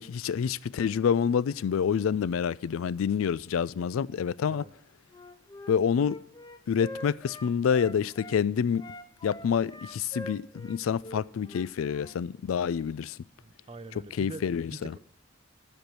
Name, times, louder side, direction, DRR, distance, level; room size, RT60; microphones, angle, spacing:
voice 1, 0.0-4.6 5.7-6.2 6.7-8.8 9.2-13.2 14.0-14.9, left 7 dB, 85° left, 0.3 m, -27 dB
Wind instrument woodwind instrument, 5.1-8.4 8.7-12.2, left 1 dB, 20° left, 0.5 m, -44 dB
voice 2, 13.4-15.0, right 2 dB, 25° right, 0.5 m, -44 dB
13.0 x 4.6 x 6.9 m
head